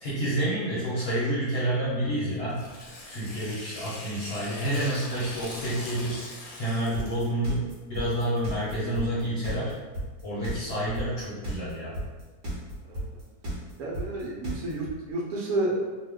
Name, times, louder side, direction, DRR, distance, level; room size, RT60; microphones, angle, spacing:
voice 1, 0.0-2.6 3.1-9.7 10.2-11.9, right 1 dB, 50° left, -8 dB, 0.9 m, -29 dB
Tearing, 2.5-7.3, left 2 dB, 70° left, 1.2 m, -42 dB
sound 1, 6.9-14.9, right 1 dB, 50° right, 1.1 m, -33 dB
voice 2, 13.8-15.8, right 2 dB, 70° right, -4 dB, 1.1 m, -30 dB
2.9 x 2.1 x 3.5 m, 1.3 s
omnidirectional pair, 1.7 m